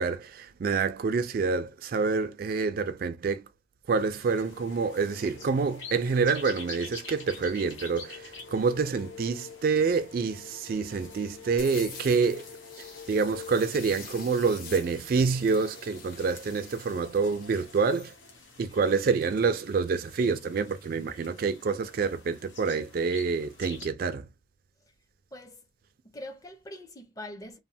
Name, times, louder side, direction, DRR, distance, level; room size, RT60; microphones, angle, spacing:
voice 1, 0.0-3.5 3.9-12.5 12.8-18.1 18.6-24.3, right 5 dB, 50° right, 0.3 m, -27 dB
sound 1, 4.0-23.9, left 3 dB, 90° left, 0.9 m, -49 dB
sound 2, 4.5-18.4, left 6 dB, 65° left, 0.4 m, -48 dB
sound 3, 11.6-18.2, left 5 dB, 50° left, 0.9 m, -47 dB
voice 2, 25.3-25.6 26.0-27.6, left 1 dB, 20° left, 0.5 m, -43 dB
3.0 x 2.1 x 2.7 m
head